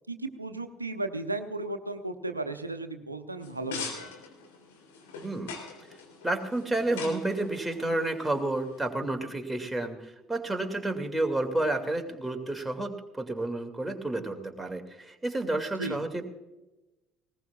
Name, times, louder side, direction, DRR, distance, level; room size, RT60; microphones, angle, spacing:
voice 1, 0.1-4.1 15.8-16.0, right 2 dB, 90° right, 8 dB, 0.8 m, -35 dB
sound 1, 3.4-8.9, left 5 dB, 75° left, 3.2 m, -43 dB
voice 2, 6.2-16.2, right 2 dB, 5° right, 4 dB, 2.4 m, -30 dB
19.5 x 18.5 x 2.4 m, 1.0 s
figure-of-eight pair, 60°, 0 cm